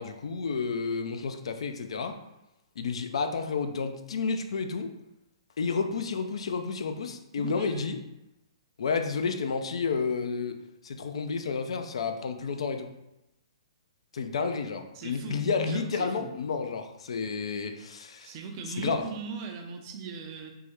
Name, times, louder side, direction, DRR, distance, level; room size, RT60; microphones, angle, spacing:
voice 1, 0.0-2.2 2.8-4.9 5.6-8.0 8.8-10.6 10.8-12.9 14.1-18.3 18.8-19.1, left 5 dB, 70° left, 7 dB, 0.3 m, -31 dB
voice 2, 7.4-7.8 14.9-16.3 18.2-20.5, right 5 dB, 35° right, 3 dB, 0.5 m, -39 dB
3.5 x 2.1 x 3.0 m, 0.91 s
hypercardioid pair, 135°, 3 cm